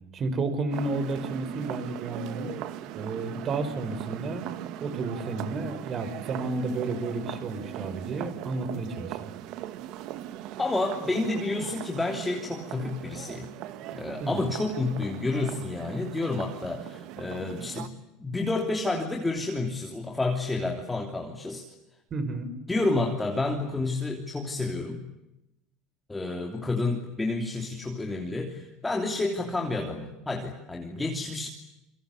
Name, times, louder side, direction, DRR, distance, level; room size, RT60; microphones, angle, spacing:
voice 1, 0.1-2.5 2.9-4.5 4.8-9.3 14.2-14.5 22.1-22.5, right 3 dB, 30° right, 12 dB, 5.0 m, -31 dB
sound 1, 0.7-17.9, right 12 dB, 55° right, 2.0 m, -39 dB
voice 2, 10.6-13.5 13.9-17.9 18.2-21.7 22.7-25.0 26.1-31.5, left 2 dB, 10° left, 2 dB, 3.1 m, -30 dB
28.5 x 24.5 x 8.3 m, 0.90 s
cardioid pair, 145°, 0 cm